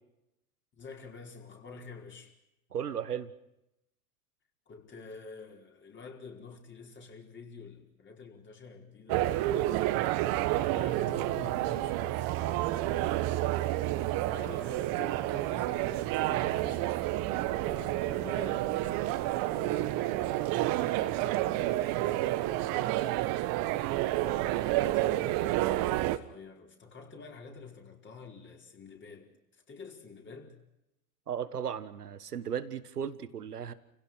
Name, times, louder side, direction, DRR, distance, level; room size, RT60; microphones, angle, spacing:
voice 1, 0.7-2.3 4.7-9.7 10.7-13.9 14.3-17.0 17.5-18.8 19.3-23.2 24.1-30.6, left 4 dB, 25° left, 4.9 m, -49 dB
voice 2, 2.7-3.3 31.3-33.7, right 8 dB, 90° right, 1.6 m, -35 dB
sound 1, 9.1-26.2, right 15 dB, 50° right, 1.6 m, -29 dB
29.5 x 17.0 x 6.3 m
hypercardioid pair, 95°, 45 cm